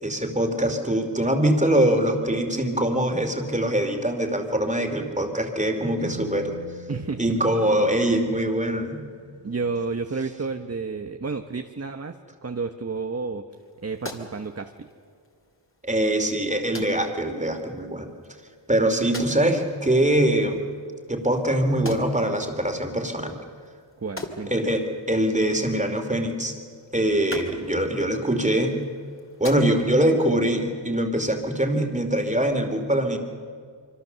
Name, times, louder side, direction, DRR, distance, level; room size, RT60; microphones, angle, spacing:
voice 1, 0.0-6.6 7.2-9.0 15.8-18.1 18.7-20.6 21.1-23.4 24.5-26.5 26.9-28.8 29.4-33.2, right 1 dB, 15° right, 5 dB, 2.7 m, -23 dB
sound 1, 6.0-9.8, right 3 dB, 60° right, 2.1 m, -43 dB
voice 2, 6.9-7.4 9.4-12.2 12.4-13.5 13.8-14.9 24.0-24.7, right 4 dB, 30° right, 6 dB, 0.9 m, -31 dB
sound 2, 13.5-30.2, left 1 dB, 25° left, 2.8 m, -44 dB
25.5 x 24.5 x 6.9 m, 2.1 s
wide cardioid pair, 90°, 46 cm